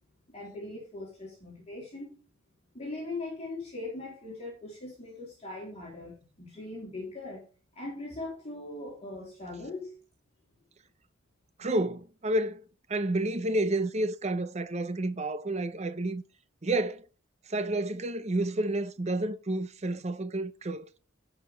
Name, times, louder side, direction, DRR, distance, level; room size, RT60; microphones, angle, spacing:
voice 1, 0.3-2.2 2.7-7.4 7.7-10.0, left 2 dB, 30° left, 3.6 m, -40 dB
voice 2, 11.6-12.6 12.9-16.2 16.6-17.0 17.5-20.9, right 1 dB, 35° right, 0.7 m, -30 dB
17.0 x 5.8 x 3.5 m
head